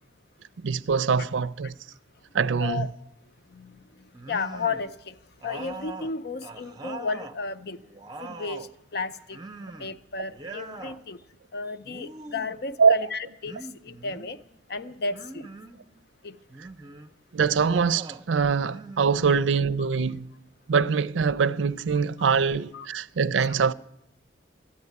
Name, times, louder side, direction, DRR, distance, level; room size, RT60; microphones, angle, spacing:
voice 1, 0.6-1.7 2.3-2.9 12.8-13.0 17.3-20.3 20.7-23.7, right 5 dB, 90° right, 0.5 m, -23 dB
voice 2, 3.5-7.8 8.2-9.4 9.8-11.2 11.5-14.4 14.7-15.5 16.2-16.4 22.7-22.9 23.4-23.5, left 4 dB, 60° left, 0.6 m, -33 dB
sound 1, 4.1-4.9 5.4-7.4 7.8-8.7 9.3-10.0 10.3-11.0 11.8-12.6 13.4-14.4 15.1-15.8 16.5-17.1 17.6-18.2 18.6-19.7, right 3 dB, 20° right, 0.6 m, -42 dB
13.5 x 9.8 x 9.4 m
head